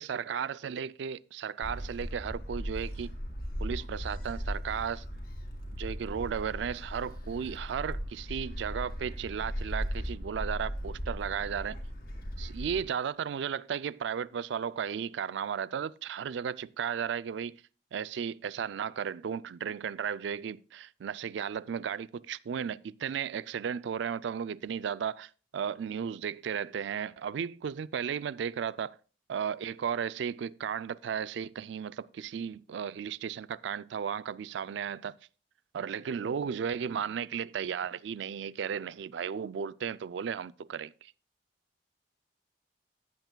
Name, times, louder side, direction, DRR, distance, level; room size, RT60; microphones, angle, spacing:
voice 1, 0.0-3.1 3.6-5.0 5.7-11.8 12.4-17.6 17.9-29.0 29.3-35.1 35.7-41.1, right 7 dB, 70° right, 0.3 m, -35 dB
Gull seagull, 1.6-12.8, equal, 50° left, 1.8 m, -37 dB
14.5 x 7.9 x 2.2 m
head